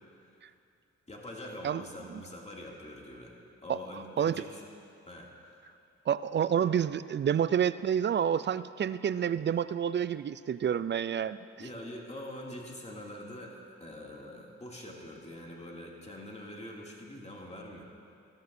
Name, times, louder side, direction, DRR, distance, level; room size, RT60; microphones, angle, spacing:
voice 1, 1.1-3.3 3.6-4.6 5.1-5.6 11.5-17.8, left 1 dB, 20° left, -2 dB, 2.5 m, -44 dB
voice 2, 6.1-11.4, right 8 dB, 35° right, 16 dB, 0.4 m, -28 dB
14.5 x 13.5 x 2.7 m, 2.6 s
hypercardioid pair, 40°, 32 cm